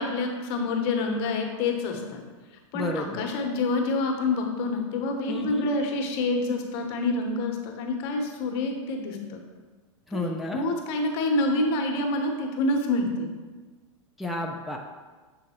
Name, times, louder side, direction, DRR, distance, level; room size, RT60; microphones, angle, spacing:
voice 1, 0.0-2.2 2.7-9.4 10.1-13.3, left 2 dB, 55° left, 3 dB, 1.1 m, -27 dB
voice 2, 2.7-3.2 5.3-5.7 10.1-10.7 14.2-14.8, left 1 dB, ahead, -1 dB, 0.5 m, -31 dB
7.0 x 3.7 x 4.4 m, 1.4 s
hypercardioid pair, 120°, 17 cm